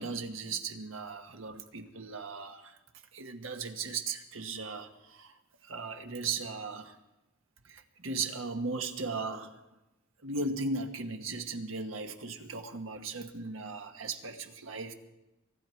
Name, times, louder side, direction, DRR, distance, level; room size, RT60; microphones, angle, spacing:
voice 1, 0.0-2.8 3.1-5.4 5.6-7.0 7.6-9.6 10.2-14.9, right 3 dB, 85° right, 1.3 m, -37 dB
24.0 x 11.0 x 4.6 m
head